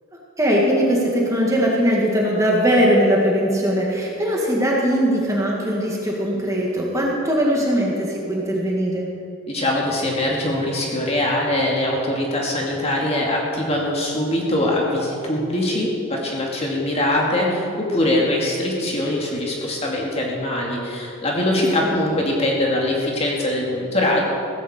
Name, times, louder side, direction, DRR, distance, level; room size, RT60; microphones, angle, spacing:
voice 1, 0.4-9.1 21.8-21.9, equal, 15° right, -3 dB, 2.0 m, -20 dB
voice 2, 9.5-24.3, left 1 dB, 30° left, -2 dB, 2.3 m, -22 dB
16.0 x 15.0 x 4.4 m, 2.6 s
head